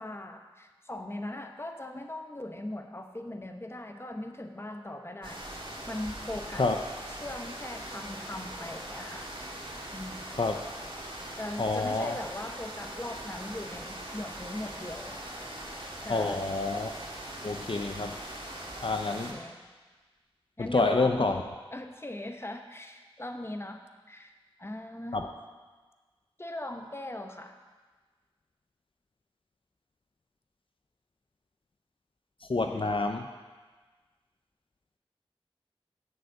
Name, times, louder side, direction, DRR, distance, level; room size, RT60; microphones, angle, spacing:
voice 1, 0.0-5.4 5.9-6.7 7.1-9.3 9.9-10.2 11.4-15.2 16.0-16.6 19.0-19.6 20.6-21.4 21.7-23.8 24.1-24.3 24.6-25.2 26.4-27.6 32.7-33.0, left 1 dB, 25° left, 5 dB, 0.8 m, -40 dB
sound 1, 5.2-19.3, right 1 dB, 60° right, 1.8 m, -41 dB
voice 2, 11.6-12.2 16.1-16.9 17.4-18.2 18.8-19.4 20.6-21.4 25.1-25.3 32.5-33.3, left 3 dB, 60° left, 4 dB, 0.6 m, -28 dB
7.0 x 6.5 x 7.8 m, 1.3 s
wide cardioid pair, 45°, 10 cm